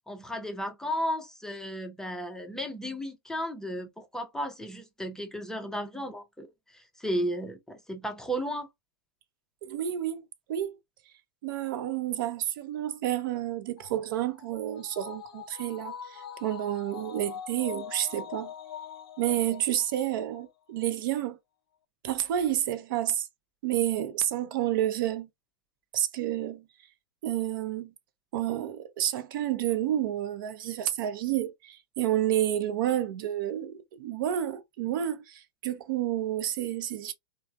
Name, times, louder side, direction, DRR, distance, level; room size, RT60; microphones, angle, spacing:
voice 1, 0.1-6.5 6.7-8.7, equal, 5° left, 0.5 m, -34 dB
voice 2, 9.6-10.2 10.5-10.8 11.4-18.5 19.2-21.4 22.0-23.3 23.6-25.3 25.9-26.6 27.2-27.9 28.3-37.1, right 12 dB, 60° right, 0.6 m, -30 dB
sound 1, 13.8-20.4 20.8-20.9, left 8 dB, 75° left, 0.5 m, -43 dB
3.2 x 2.0 x 2.3 m
hypercardioid pair, 105°, 12 cm